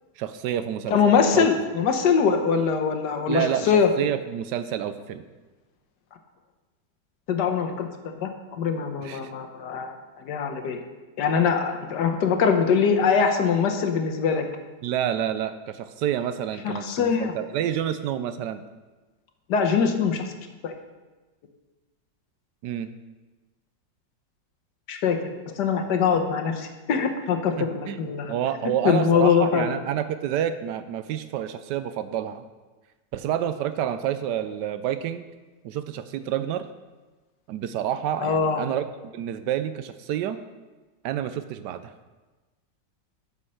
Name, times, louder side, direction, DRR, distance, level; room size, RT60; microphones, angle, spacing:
voice 1, 0.2-1.5 3.3-5.2 9.0-9.3 14.8-18.6 22.6-22.9 27.6-32.4 33.1-35.3 35.6-36.7 37.5-38.8 39.1-40.4 41.0-41.9, right 10 dB, 75° right, 11 dB, 1.1 m, -29 dB
voice 2, 0.9-3.9 7.3-9.9 10.2-10.8 11.2-14.4 16.6-17.3 19.5-20.3 20.6-20.7 24.9-28.3 28.8-29.7 38.2-38.6, left 6 dB, 70° left, 5 dB, 1.5 m, -23 dB
9.8 x 5.5 x 6.3 m, 1.2 s
omnidirectional pair, 1.9 m